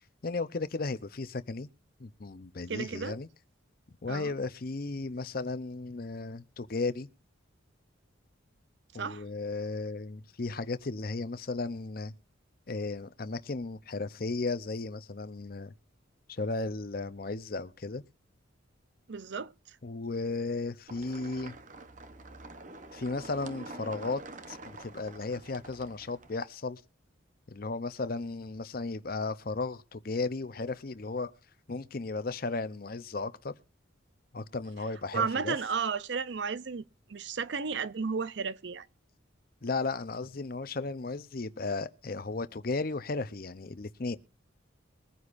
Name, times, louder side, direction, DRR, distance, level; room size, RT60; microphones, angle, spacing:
voice 1, 0.2-1.7 2.0-3.3 4.0-7.1 8.9-12.1 12.7-15.7 16.3-18.0 19.8-21.6 22.9-24.2 24.5-26.8 27.5-31.3 31.7-33.5 34.3-35.6 39.6-44.2, left 3 dB, 50° left, 0.7 m, -35 dB
voice 2, 2.7-3.2 4.1-4.3 8.9-9.2 19.1-19.8 35.1-36.8 37.1-38.9, right 5 dB, 60° right, 0.6 m, -33 dB
sound 1, 20.9-26.3, right 2 dB, 40° right, 0.9 m, -47 dB
22.0 x 9.6 x 2.6 m
head